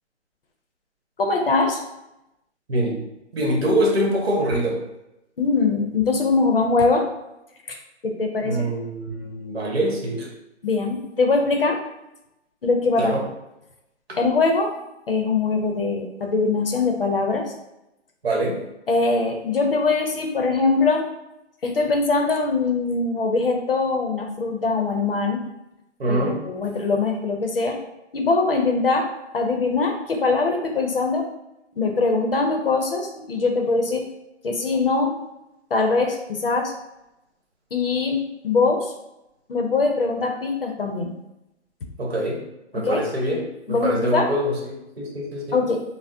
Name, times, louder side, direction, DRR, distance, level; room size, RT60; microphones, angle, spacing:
voice 1, 1.2-1.8 5.4-7.1 7.7-7.8 8.0-8.6 10.6-11.8 12.6-13.1 14.2-14.7 15.1-17.5 18.9-21.0 21.6-25.4 26.1-27.8 28.1-29.1 29.3-31.3 31.8-34.0 34.4-35.1 35.7-36.7 37.7-38.9 39.5-41.1 42.7-43.0 43.7-44.3 45.5-45.8, left 3 dB, 50° left, 3 dB, 0.6 m, -22 dB
voice 2, 3.3-4.8 8.4-10.3 13.0-13.2 14.1-14.2 18.2-18.6 26.0-26.3 42.0-42.4 42.7-43.4 43.7-45.6, right 1 dB, 60° right, -1 dB, 1.1 m, -24 dB
5.7 x 2.0 x 2.7 m, 0.91 s
hypercardioid pair, 175°, 35 cm